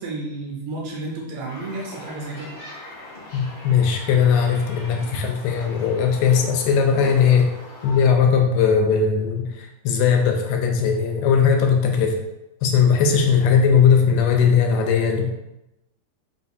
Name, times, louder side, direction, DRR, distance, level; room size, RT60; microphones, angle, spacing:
voice 1, 0.0-2.5, right 2 dB, 75° right, -2 dB, 2.0 m, -31 dB
sound 1, 1.5-8.0, left 2 dB, 55° left, 1.2 m, -40 dB
voice 2, 3.3-7.5 7.8-12.2 12.6-15.3, left 6 dB, 85° left, 3 dB, 2.2 m, -18 dB
5.1 x 3.2 x 2.6 m, 0.93 s
omnidirectional pair, 3.9 m